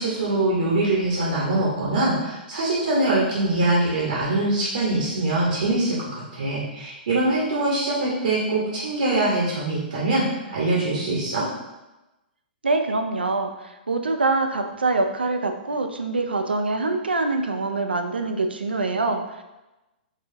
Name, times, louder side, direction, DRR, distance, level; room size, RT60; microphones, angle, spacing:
voice 1, 0.0-11.4, right 2 dB, 65° right, -4 dB, 0.9 m, -23 dB
voice 2, 12.6-19.4, right 3 dB, 80° right, 6 dB, 0.4 m, -24 dB
3.8 x 2.8 x 2.7 m, 1.0 s
figure-of-eight pair, 115°, 5 cm